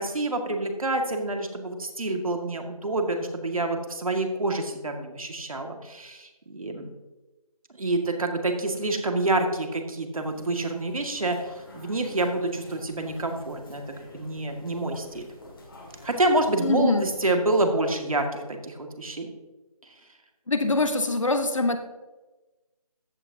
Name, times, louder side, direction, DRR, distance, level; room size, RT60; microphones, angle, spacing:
voice 1, 0.0-6.9 7.8-11.4 11.7-13.8 14.1-15.3 16.0-19.3, right 2 dB, 65° right, 4 dB, 2.0 m, -27 dB
sound 1, 10.2-17.3, left 1 dB, 35° left, 2.5 m, -48 dB
voice 2, 16.6-17.1 20.5-21.8, left 2 dB, 55° left, 8 dB, 1.1 m, -23 dB
14.5 x 9.0 x 2.8 m, 1.1 s
figure-of-eight pair, 180°, 19 cm